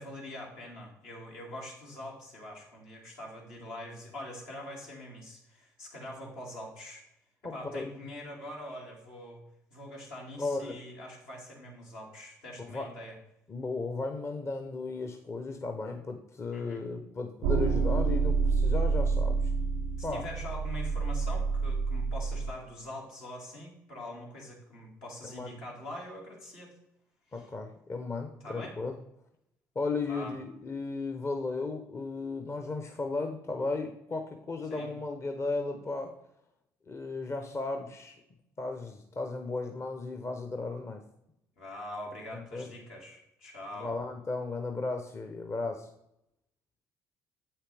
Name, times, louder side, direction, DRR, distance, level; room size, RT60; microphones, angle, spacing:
voice 1, 0.0-7.0 7.5-9.4 9.7-13.2 16.5-16.8 20.0-26.8 27.3-27.5 28.4-28.8 30.1-30.3 34.7-34.9 41.6-43.9, left 1 dB, 75° left, -3 dB, 2.2 m, -44 dB
voice 2, 7.4-7.9 10.4-10.8 12.6-12.9 13.5-19.5 20.0-20.3 25.3-25.5 27.3-29.0 29.7-36.1 36.9-38.2 38.6-41.0 42.5-42.7 43.7-45.9, left 3 dB, 35° left, 5 dB, 0.8 m, -35 dB
sound 1, 17.4-22.5, right 4 dB, 85° right, 0.5 m, -28 dB
7.7 x 5.7 x 3.4 m, 0.79 s
hypercardioid pair, 55°, 8 cm